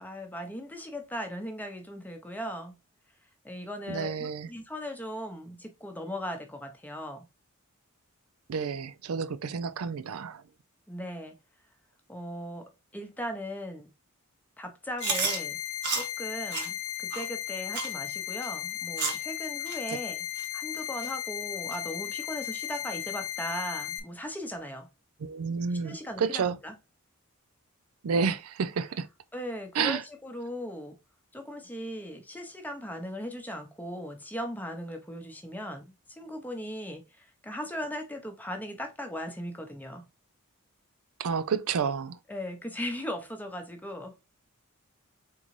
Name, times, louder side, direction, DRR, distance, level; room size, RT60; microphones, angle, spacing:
voice 1, 0.0-2.8 3.4-7.2 10.9-11.4 12.1-13.9 14.6-15.6 15.9-24.9 25.8-26.7 29.3-31.0 31.3-40.1 42.3-44.2, equal, 10° left, 0.7 m, -38 dB
voice 2, 3.9-4.5 8.5-10.4 25.2-26.6 28.0-29.1 29.8-30.0 41.2-42.2, right 5 dB, 75° right, 0.4 m, -30 dB
sound 1, 15.0-24.0, left 12 dB, 60° left, 0.8 m, -36 dB
Chewing mastication, 15.0-15.4 15.8-16.1 16.5-16.7 17.1-17.2 17.7-17.9 18.4-18.5 19.0-19.2 19.7-19.8 20.4-20.5 21.0-21.1 21.7-21.8, right 5 dB, 50° right, 1.2 m, -30 dB
3.9 x 3.7 x 3.1 m
head